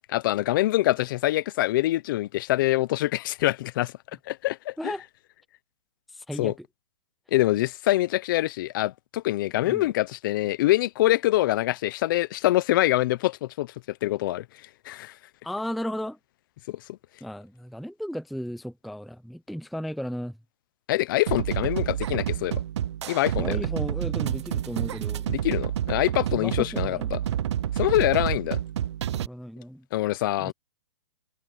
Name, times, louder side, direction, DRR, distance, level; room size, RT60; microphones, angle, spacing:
voice 1, 0.1-3.9 4.3-4.9 6.4-6.5 7.3-14.4 14.8-15.1 16.7-17.0 20.9-22.6 23.1-23.6 25.3-27.2 27.8-28.6 29.9-30.5, left 16 dB, 45° left, 0.7 m, -25 dB
voice 2, 6.1-6.6 9.6-9.8 15.4-16.2 17.2-20.4 23.3-25.3 26.4-27.2 29.1-29.8 30.4-30.5, equal, ahead, 0.4 m, -35 dB
sound 1, 21.3-29.3, right 10 dB, 60° right, 0.7 m, -29 dB
hypercardioid pair, 150°, 16 cm